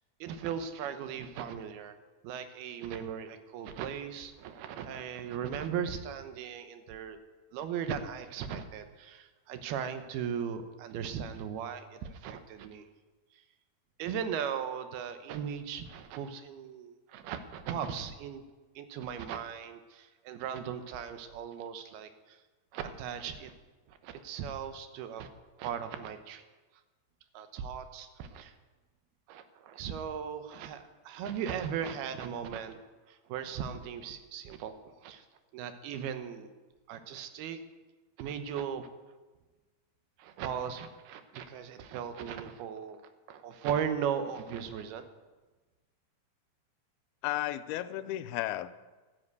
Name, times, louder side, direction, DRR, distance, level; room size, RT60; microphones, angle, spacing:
voice 1, 0.2-2.0 2.2-7.2 7.5-12.8 14.0-18.4 18.8-22.4 22.7-23.5 23.9-25.3 25.6-26.4 27.3-28.5 29.3-32.8 33.1-34.7 35.0-35.2 35.5-36.5 36.9-37.6 38.2-38.9 40.2-43.0 43.3-45.0, right 8 dB, 90° right, 9 dB, 3.0 m, -37 dB
voice 2, 47.2-48.7, left 14 dB, 85° left, 13 dB, 2.6 m, -33 dB
13.0 x 9.9 x 8.1 m, 1.2 s
omnidirectional pair, 4.3 m